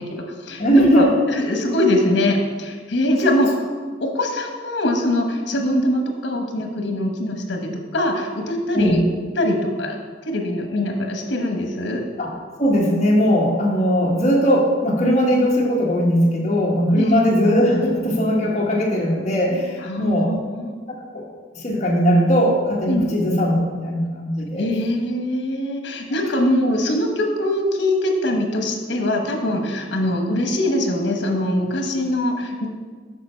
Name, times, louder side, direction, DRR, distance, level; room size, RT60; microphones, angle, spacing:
voice 1, 0.0-3.6 4.0-9.0 9.3-10.0 10.3-12.0 16.9-17.2 19.8-20.7 22.9-23.2 24.6-32.7, left 1 dB, 80° left, 3 dB, 1.1 m, -22 dB
voice 2, 0.6-1.1 8.7-9.0 12.2-12.3 12.6-20.3 20.9-21.2 21.5-24.7, equal, 40° left, -2 dB, 1.4 m, -19 dB
6.8 x 5.4 x 4.4 m, 1.5 s
head